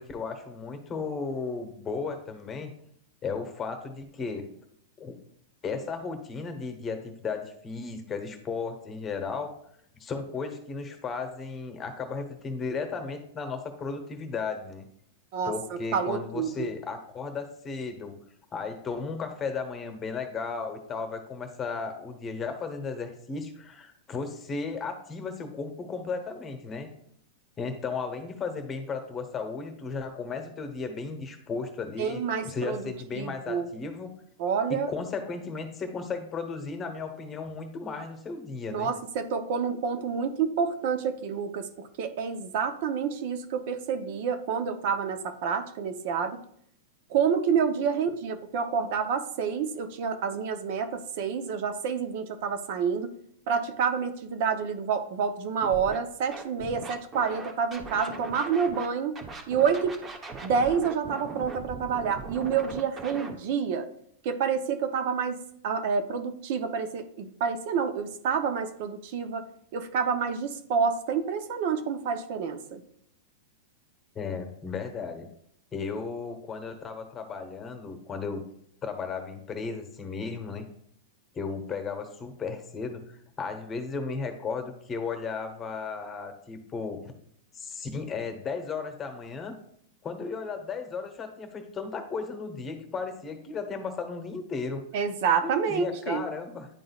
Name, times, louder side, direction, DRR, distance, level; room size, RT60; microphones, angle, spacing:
voice 1, 0.0-2.7 3.2-4.5 5.0-5.2 5.6-9.5 10.0-14.9 15.4-18.1 18.5-26.9 27.6-34.1 34.7-38.9 74.1-75.3 75.7-78.4 78.8-80.7 81.3-87.1 87.5-89.5 90.0-94.8 95.4-96.7, left 4 dB, 20° left, 7 dB, 1.0 m, -35 dB
voice 2, 15.3-16.7 32.0-33.7 34.4-34.9 38.7-46.4 47.1-53.1 53.5-59.2 59.5-60.0 60.4-63.9 64.2-65.4 65.6-69.4 69.7-72.8 94.9-96.2, right 6 dB, 55° right, 9 dB, 0.7 m, -28 dB
Scratching (performance technique), 55.6-56.0 56.3-58.9 59.1-63.3, right 4 dB, 20° right, 0.9 m, -40 dB
10.5 x 3.8 x 2.4 m, 0.68 s
hypercardioid pair, 130°, 0 cm